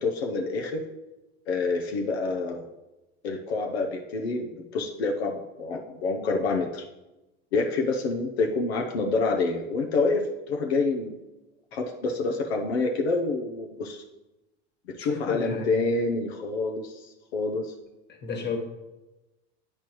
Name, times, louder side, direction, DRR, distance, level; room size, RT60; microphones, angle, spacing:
voice 1, 0.0-0.8 1.5-2.6 3.2-6.8 7.5-11.2 11.7-14.0 15.0-17.7, left 3 dB, 85° left, 2 dB, 0.8 m, -27 dB
voice 2, 15.0-15.7 18.2-18.6, left 5 dB, 35° left, 3 dB, 1.6 m, -31 dB
8.7 x 4.3 x 3.0 m, 1.0 s
hypercardioid pair, 90°, 31 cm